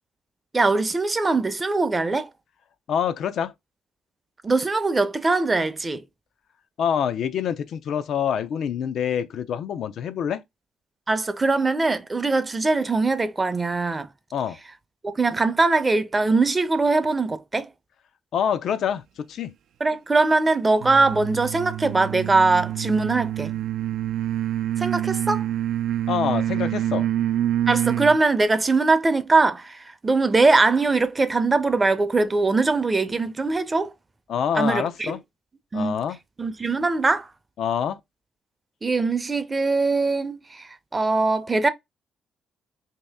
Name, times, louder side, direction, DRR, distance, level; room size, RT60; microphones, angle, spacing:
voice 1, 0.5-2.3 4.4-6.0 11.1-14.1 15.0-17.7 19.8-23.6 24.8-25.5 27.7-33.9 34.5-35.1 35.7-36.0 36.4-37.3 38.8-41.7, right 3 dB, 25° right, 0.5 m, -21 dB
voice 2, 2.9-3.5 6.8-10.4 14.3-14.6 18.3-19.5 26.1-27.1 34.3-35.2 35.7-36.2 37.6-38.0, left 8 dB, 70° left, 0.4 m, -26 dB
sound 1, 20.8-28.2, right 12 dB, 75° right, 0.4 m, -26 dB
2.9 x 2.8 x 3.4 m
cardioid pair, 90°, 0 cm